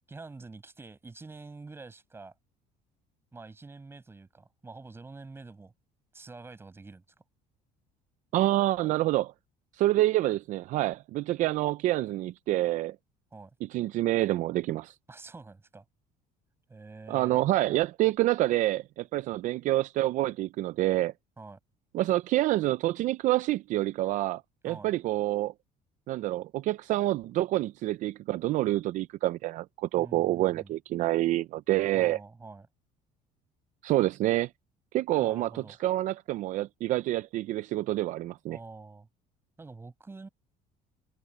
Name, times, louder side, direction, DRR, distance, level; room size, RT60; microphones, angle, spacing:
voice 1, 0.1-2.3 3.3-5.7 6.1-7.0 13.3-13.5 15.1-15.8 16.7-17.4 21.4-21.6 24.6-24.9 30.0-30.7 31.9-32.7 35.2-35.8 38.5-39.1 39.6-40.3, right 3 dB, 15° right, 6.8 m, -46 dB
voice 2, 8.3-9.3 9.7-13.0 13.6-14.9 17.1-21.1 21.9-25.5 26.1-32.2 33.8-34.5 34.9-38.6, right 16 dB, 55° right, 0.5 m, -27 dB
cardioid pair, 145°, 16 cm